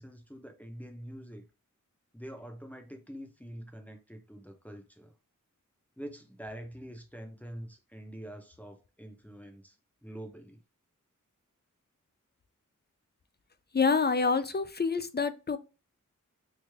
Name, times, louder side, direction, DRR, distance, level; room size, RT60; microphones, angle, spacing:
voice 1, 0.0-1.5 2.1-5.1 6.0-9.8 10.0-10.6, equal, 5° left, 0.7 m, -45 dB
voice 2, 13.7-15.6, left 4 dB, 35° left, 0.4 m, -27 dB
3.2 x 2.4 x 3.4 m
wide cardioid pair, 40°, 32 cm